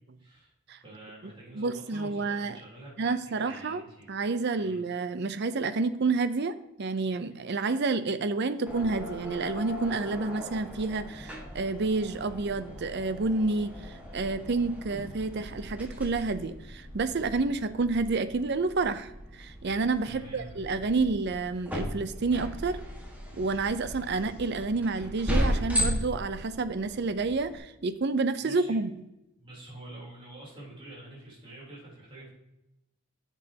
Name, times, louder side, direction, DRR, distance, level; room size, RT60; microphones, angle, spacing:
voice 1, 0.2-0.5 0.8-4.1 4.6-4.8 20.0-20.6 28.4-28.8 29.4-32.3, right 1 dB, 25° right, -5 dB, 3.4 m, -47 dB
voice 2, 1.6-2.6 3.0-3.8 4.1-22.8 23.3-29.0, right 3 dB, 50° right, 12 dB, 0.5 m, -29 dB
sound 1, 8.7-27.6, equal, 5° right, 1.5 m, -36 dB
10.5 x 7.2 x 2.8 m, 0.90 s
head